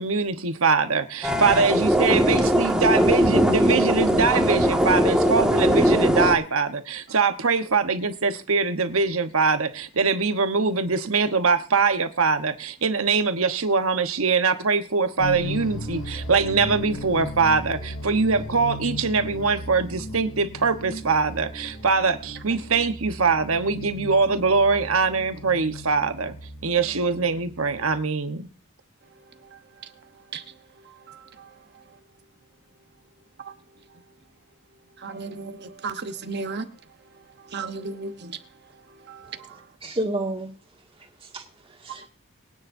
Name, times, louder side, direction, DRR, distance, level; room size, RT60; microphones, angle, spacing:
voice 1, 0.0-26.3 26.6-28.5, right 4 dB, 70° right, 1.1 m, -23 dB
sound 1, 1.2-6.3, equal, 5° right, 1.8 m, -20 dB
sound 2, 15.2-28.0, equal, 65° left, 3.9 m, -37 dB
voice 2, 35.0-36.7 37.5-38.3, right 4 dB, 50° right, 1.0 m, -33 dB
voice 3, 39.2-40.5 41.2-42.1, right 1 dB, 25° right, 2.2 m, -32 dB
23.5 x 9.7 x 2.7 m
head